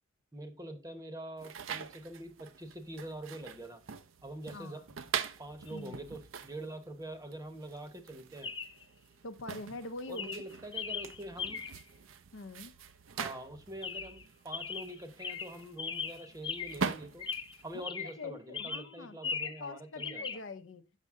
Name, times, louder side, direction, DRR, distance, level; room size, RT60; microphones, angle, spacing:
voice 1, 0.3-3.8 4.2-4.8 5.4-8.5 10.1-11.6 13.1-17.3 17.6-20.4, right 1 dB, 15° right, 0.9 m, -45 dB
sound 1, 1.4-17.9, right 6 dB, 75° right, 0.6 m, -43 dB
voice 2, 4.5-4.8 5.7-6.0 9.2-10.3 12.3-12.7 18.0-20.8, left 3 dB, 65° left, 0.7 m, -44 dB
Chirp tweet, 5.7-5.8 8.4-8.8 9.6-9.8 10.2-11.9 13.8-14.3 14.5-16.9 17.2-18.2 18.5-19.7 20.0-20.4, left 6 dB, 25° left, 0.7 m, -39 dB
7.4 x 6.5 x 3.6 m
head